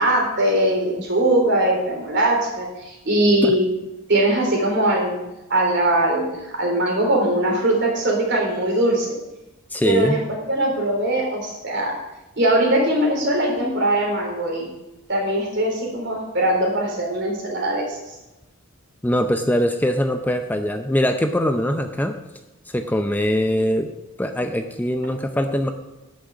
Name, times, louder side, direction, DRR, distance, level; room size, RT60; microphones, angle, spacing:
voice 1, 0.0-3.6 4.1-5.2 5.5-9.1 9.8-10.2 10.5-12.0 12.4-14.7 15.1-18.0, right 1 dB, 55° right, 0 dB, 3.8 m, -21 dB
voice 2, 9.7-10.2 19.0-22.2 22.7-23.9 24.2-25.7, equal, 10° left, 6 dB, 0.5 m, -22 dB
11.5 x 6.3 x 8.4 m, 0.98 s
head